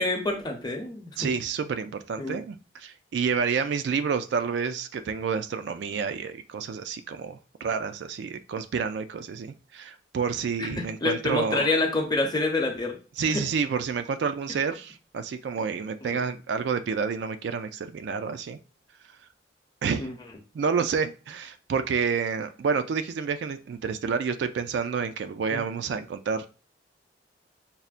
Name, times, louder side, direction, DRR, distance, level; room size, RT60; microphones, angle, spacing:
voice 1, 0.0-1.3 2.2-2.4 10.6-10.7 11.0-13.4 16.0-16.2 20.0-20.1 25.5-25.6, left 2 dB, 25° left, 0.7 m, -27 dB
voice 2, 1.2-11.7 13.2-18.6 19.8-20.1 20.5-26.5, right 6 dB, 70° right, 0.3 m, -29 dB
5.4 x 2.1 x 2.4 m
head